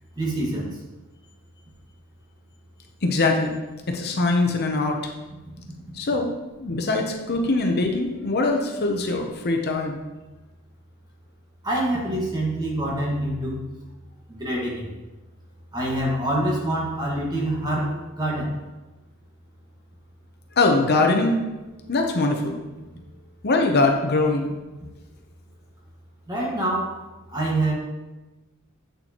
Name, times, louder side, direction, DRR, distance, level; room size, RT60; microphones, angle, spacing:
voice 1, 0.1-0.8 11.6-13.6 14.3-14.9 15.7-18.6 26.3-27.0 27.3-27.7, right 1 dB, 20° right, -3 dB, 1.6 m, -26 dB
voice 2, 3.0-3.6 3.9-5.1 5.9-6.3 6.6-10.0 20.6-21.4 21.9-22.6 23.4-24.5, left 2 dB, 50° left, 3 dB, 0.7 m, -22 dB
8.0 x 6.6 x 3.0 m, 1.1 s
head